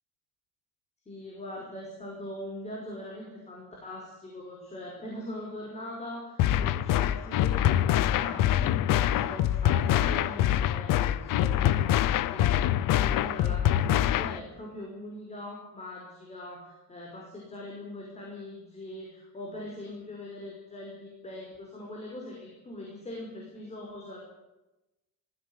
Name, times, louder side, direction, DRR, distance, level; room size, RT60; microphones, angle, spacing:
voice 1, 1.1-24.2, left 1 dB, 20° left, -2 dB, 5.4 m, -41 dB
sound 1, 6.4-14.4, left 12 dB, 65° left, 1.0 m, -25 dB
20.0 x 16.0 x 9.9 m, 0.98 s
cardioid pair, 175°, 35 cm